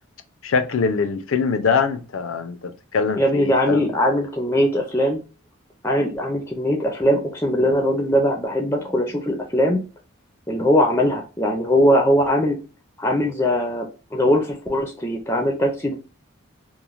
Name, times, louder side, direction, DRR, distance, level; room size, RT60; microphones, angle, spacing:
voice 1, 0.4-3.9, left 5 dB, 75° left, 0.4 m, -23 dB
voice 2, 3.2-5.2 5.8-9.8 10.5-12.6 13.0-16.0, equal, 10° left, 0.4 m, -20 dB
3.1 x 2.0 x 2.3 m
head